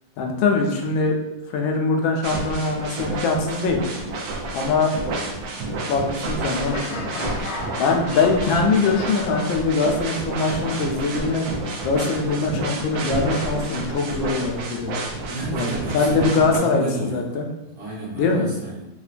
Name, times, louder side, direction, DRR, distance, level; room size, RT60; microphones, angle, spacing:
voice 1, 0.2-1.2 1.5-3.8 4.5-4.9 5.9-6.8 7.8-11.5 11.8-15.0 15.6-15.7 15.9-17.5 18.1-18.5, left 4 dB, 90° left, 2 dB, 1.4 m, -22 dB
sound 1, 2.2-16.6, right 2 dB, 75° right, 1.3 m, -30 dB
Laughter, 6.7-10.5, left 3 dB, 75° left, 0.9 m, -35 dB
voice 2, 15.2-17.2 17.6-18.9, right 2 dB, 60° right, -6 dB, 1.3 m, -31 dB
4.2 x 2.2 x 2.4 m, 0.94 s
omnidirectional pair, 2.1 m